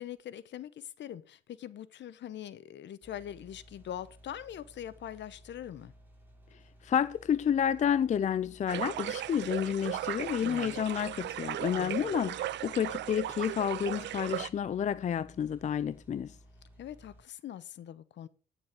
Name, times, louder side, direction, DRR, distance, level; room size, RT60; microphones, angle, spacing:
voice 1, 0.0-5.9 10.4-10.8 11.7-11.9 16.8-18.3, left 10 dB, 65° left, 0.9 m, -43 dB
sound 1, 3.0-17.2, equal, 10° right, 4.5 m, -57 dB
voice 2, 6.8-16.3, left 8 dB, 35° left, 0.4 m, -30 dB
sound 2, 8.7-14.5, right 14 dB, 65° right, 0.4 m, -37 dB
9.7 x 7.1 x 5.2 m
cardioid pair, 90°, 20 cm